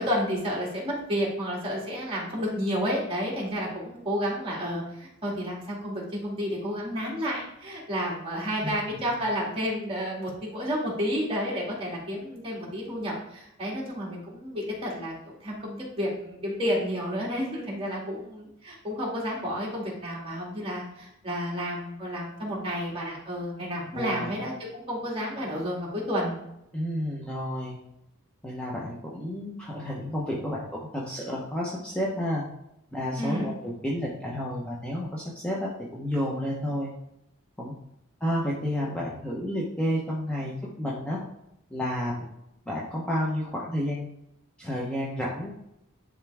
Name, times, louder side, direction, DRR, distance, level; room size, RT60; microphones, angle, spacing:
voice 1, 0.0-26.4 33.2-33.5, equal, 25° right, -4 dB, 2.4 m, -31 dB
voice 2, 8.6-9.1 23.9-24.3 26.7-27.8 28.4-32.4 32.9-36.9 37.6-37.7 38.2-41.2 41.7-42.2 42.7-44.1 44.6-45.5, equal, 5° left, -5 dB, 0.9 m, -31 dB
10.5 x 3.7 x 3.5 m, 0.82 s
head